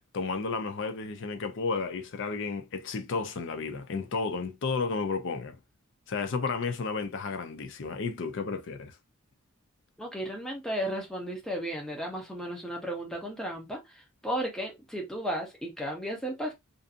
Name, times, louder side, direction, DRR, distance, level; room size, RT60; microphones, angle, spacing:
voice 1, 0.1-5.6 6.1-8.9, left 4 dB, 55° left, 0.5 m, -32 dB
voice 2, 10.0-16.5, equal, ahead, 0.7 m, -34 dB
2.6 x 2.5 x 2.5 m
head